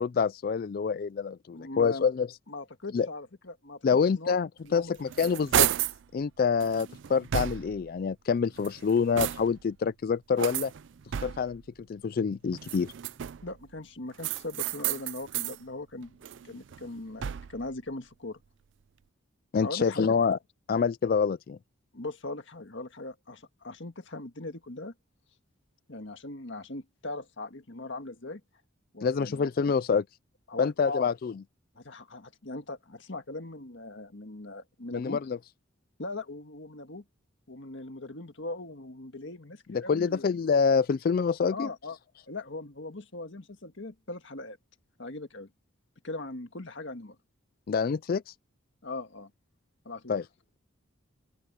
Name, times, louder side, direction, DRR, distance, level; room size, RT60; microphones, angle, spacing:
voice 1, 0.0-2.3 2.9-3.1 3.8-5.7 6.1-10.7 11.2-11.6 11.9-12.9 19.5-20.4 20.7-21.6 29.0-30.0 30.6-31.3 34.9-35.4 39.7-41.7 47.7-48.2 50.1-50.2, left 5 dB, 45° left, 0.3 m, -26 dB
voice 2, 1.5-2.1 2.5-3.9 4.1-4.4 4.6-4.9 5.2-5.3 13.4-16.2 16.4-18.4 19.6-20.2 21.9-24.9 25.9-28.4 28.9-29.5 30.5-31.1 31.8-35.2 36.0-37.0 37.5-40.3 41.5-42.0 42.3-44.6 45.0-45.5 46.0-47.2 48.8-49.3 49.9-50.2, left 2 dB, 60° left, 1.8 m, -40 dB
sound 1, 4.7-6.0 6.6-7.9 8.5-9.7 10.4-11.6 12.5-13.6 14.2-15.6 16.0-17.7, right 11 dB, 60° right, 0.4 m, -32 dB
open air
head